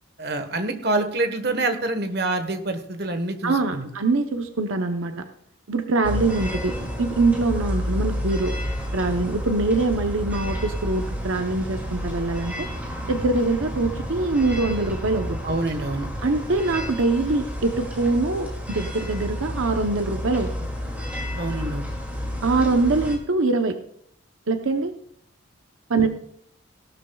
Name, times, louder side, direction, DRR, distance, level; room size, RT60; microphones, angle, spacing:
voice 1, 0.2-3.9 15.4-16.1 21.4-21.8 26.0-26.1, right 2 dB, 50° right, 7 dB, 1.2 m, -26 dB
voice 2, 3.4-5.3 5.7-8.5 8.9-12.7 13.1-15.4 16.2-20.5 22.4-23.8 24.5-24.9 25.9-26.1, right 3 dB, 80° right, 6 dB, 0.8 m, -23 dB
sound 1, 6.0-23.2, equal, 10° right, 2.3 m, -30 dB
17.5 x 12.5 x 2.3 m, 0.68 s
head